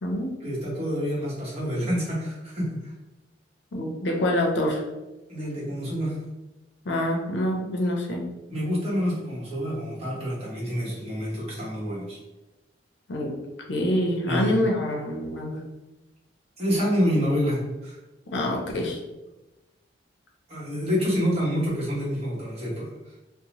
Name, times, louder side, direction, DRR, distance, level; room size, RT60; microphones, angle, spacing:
voice 1, 0.4-2.7 5.3-6.2 8.5-12.2 14.3-14.7 16.6-18.0 20.5-22.9, equal, 35° right, -7 dB, 1.1 m, -27 dB
voice 2, 3.7-4.8 6.8-8.2 13.1-13.4 13.7-15.6 18.3-19.0, left 1 dB, 70° left, 0 dB, 0.6 m, -26 dB
2.8 x 2.0 x 2.9 m, 1.0 s
head